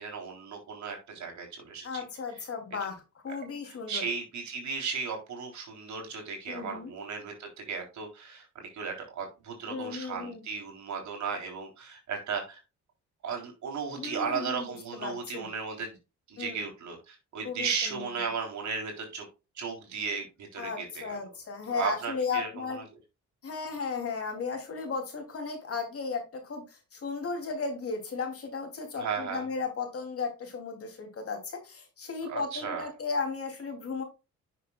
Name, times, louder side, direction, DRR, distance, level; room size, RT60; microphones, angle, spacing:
voice 1, 0.0-2.0 3.7-12.6 13.2-16.0 16.3-19.3 19.6-21.2 21.7-22.8 29.0-29.5 32.3-32.9, right 5 dB, 70° right, 2 dB, 3.4 m, -35 dB
voice 2, 1.8-3.0 3.2-4.0 6.5-6.9 9.7-10.4 14.0-15.5 16.4-16.7 17.4-18.1 20.6-22.8 23.4-34.0, left 4 dB, 50° left, 4 dB, 3.0 m, -35 dB
9.7 x 6.4 x 2.3 m, 0.28 s
cardioid pair, 90°, 30 cm